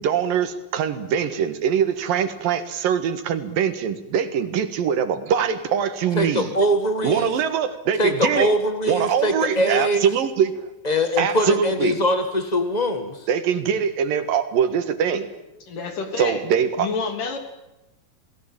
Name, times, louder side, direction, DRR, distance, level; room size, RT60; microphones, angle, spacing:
voice 1, 0.0-6.6 7.0-8.5 8.9-10.7 11.2-12.0 13.3-15.3 16.2-16.9, right 7 dB, 70° right, 9 dB, 3.3 m, -23 dB
voice 2, 6.2-7.3 8.0-10.0 10.8-13.2, equal, 45° left, 7 dB, 0.5 m, -22 dB
voice 3, 15.7-16.4 16.8-17.4, left 4 dB, 60° left, 6 dB, 4.7 m, -28 dB
28.5 x 18.5 x 8.9 m, 0.95 s
omnidirectional pair, 4.2 m